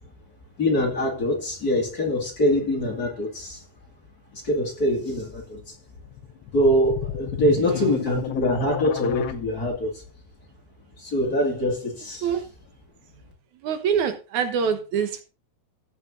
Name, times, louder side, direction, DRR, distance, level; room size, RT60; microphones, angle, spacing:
voice 1, 0.6-3.6 4.3-5.7 6.5-10.0 11.0-12.2, left 1 dB, 30° left, 2.6 m, -24 dB
sound 1, 6.1-9.3, left 11 dB, 65° left, 1.3 m, -32 dB
voice 2, 13.6-15.2, right 7 dB, 75° right, 2.6 m, -25 dB
15.0 x 6.4 x 3.8 m
omnidirectional pair, 3.4 m